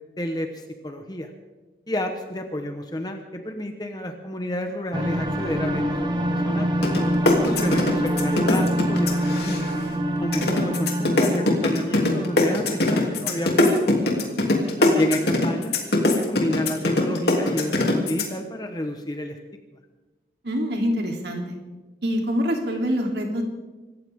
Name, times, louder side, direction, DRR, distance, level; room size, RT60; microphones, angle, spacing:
voice 1, 0.2-1.3 1.9-6.7 7.4-9.7 10.2-13.8 14.8-15.7 16.3-19.4, left 1 dB, 25° left, 5 dB, 1.1 m, -30 dB
sound 1, 4.9-14.3, equal, 25° right, 1.5 m, -26 dB
sound 2, 6.8-7.0 7.3-9.9 10.3-18.2, left 2 dB, 70° left, 2.9 m, -21 dB
voice 2, 7.6-8.0 20.4-21.5 22.0-23.4, equal, 75° right, 1 dB, 3.1 m, -25 dB
25.5 x 14.0 x 3.7 m, 1.2 s
head